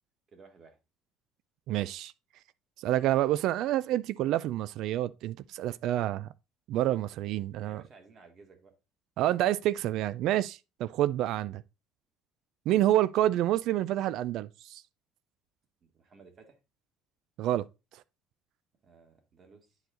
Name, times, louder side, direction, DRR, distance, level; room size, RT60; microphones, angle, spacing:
voice 1, 0.3-0.8 7.6-8.7 15.8-16.6 18.8-19.8, right 4 dB, 40° right, 2.3 m, -56 dB
voice 2, 1.7-2.1 2.8-6.3 6.7-7.8 9.2-11.6 12.7-14.8 17.4-17.6, right 13 dB, 70° right, 0.3 m, -28 dB
9.7 x 4.7 x 3.8 m
cardioid pair, 110°, 0 cm